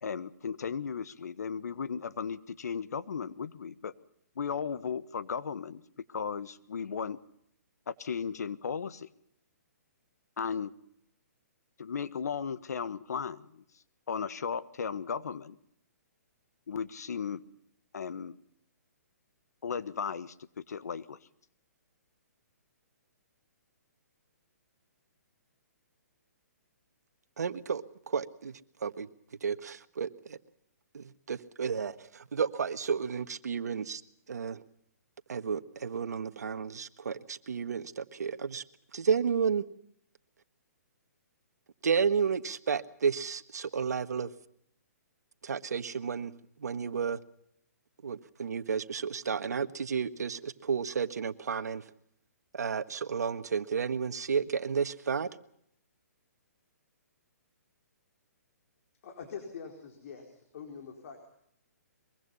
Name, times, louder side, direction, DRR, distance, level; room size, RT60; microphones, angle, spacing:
voice 1, 0.0-3.9 4.3-5.8 6.1-7.2 7.9-9.1 10.4-10.7 11.8-15.6 16.7-17.4 17.9-18.3 19.6-21.2, left 6 dB, 75° left, 1.4 m, -36 dB
voice 2, 27.4-28.5 28.8-29.1 29.4-30.4 30.9-34.0 34.3-34.6 35.3-38.6 38.9-39.6 41.8-44.3 45.4-46.3 46.6-47.2 48.0-51.8 52.5-55.3, right 6 dB, 75° right, 1.5 m, -32 dB
voice 3, 59.0-61.2, left 6 dB, 55° left, 4.4 m, -44 dB
23.5 x 23.0 x 5.6 m
hypercardioid pair, 140°, 9 cm